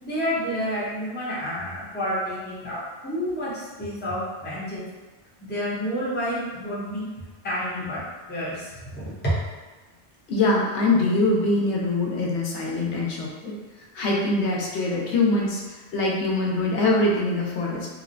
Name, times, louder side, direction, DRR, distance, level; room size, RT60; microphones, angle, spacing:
voice 1, 0.0-4.9 5.4-7.1 7.4-9.3, equal, 10° left, -9 dB, 0.6 m, -29 dB
voice 2, 10.3-13.5 13.9-17.9, left 2 dB, 85° left, -2 dB, 0.9 m, -23 dB
2.9 x 2.0 x 2.5 m, 1.2 s
omnidirectional pair, 1.1 m